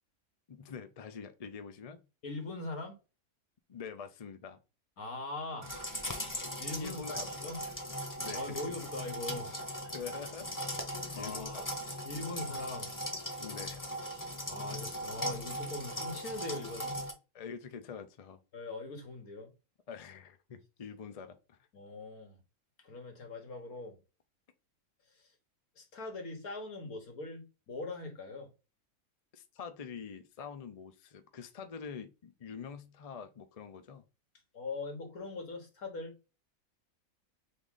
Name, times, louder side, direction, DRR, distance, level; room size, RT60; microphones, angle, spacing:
voice 1, 0.5-2.1 3.7-4.6 6.8-7.3 7.6-7.7 8.2-8.8 9.9-10.5 11.2-12.0 13.4-13.8 17.3-18.4 19.9-21.6 29.3-34.0, left 6 dB, 40° left, 0.5 m, -45 dB
voice 2, 2.2-3.0 5.0-5.9 6.6-7.6 8.3-9.7 11.2-11.7 12.0-12.9 14.0-17.0 18.5-19.5 21.7-22.4 22.8-24.0 25.1-25.3 25.8-28.5 34.5-36.1, left 2 dB, 85° left, 1.9 m, -42 dB
sound 1, 5.6-17.1, equal, 15° left, 0.9 m, -39 dB
3.9 x 3.6 x 3.8 m
omnidirectional pair, 1.5 m